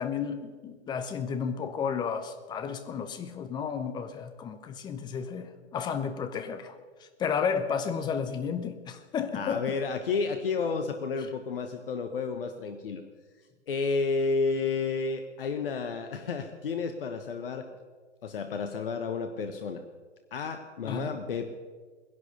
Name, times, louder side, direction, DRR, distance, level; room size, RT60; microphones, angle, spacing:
voice 1, 0.0-9.7 20.8-21.1, left 6 dB, 15° left, 9 dB, 0.9 m, -32 dB
voice 2, 9.3-13.0 13.7-17.7 18.2-19.8 20.3-21.5, left 4 dB, 55° left, 6 dB, 1.2 m, -31 dB
19.0 x 11.0 x 6.7 m, 1.5 s
figure-of-eight pair, 115°, 34 cm